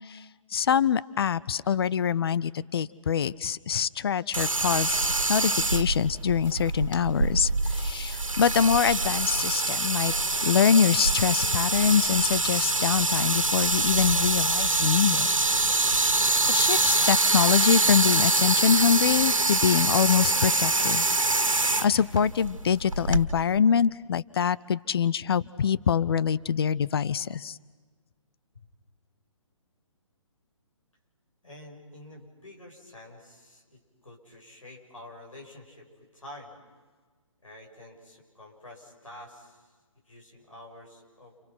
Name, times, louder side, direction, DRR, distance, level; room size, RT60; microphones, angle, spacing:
voice 1, 0.5-10.1 10.4-15.3 16.5-21.1 21.5-27.6, left 7 dB, 50° left, 19 dB, 0.7 m, -25 dB
sound 1, 4.3-23.3, right 2 dB, 80° right, 1.8 m, -25 dB
voice 2, 31.4-36.5 37.4-39.7 40.1-41.3, left 1 dB, 80° left, -1 dB, 7.3 m, -48 dB
29.5 x 29.5 x 5.9 m, 1.4 s
figure-of-eight pair, 135°, 17 cm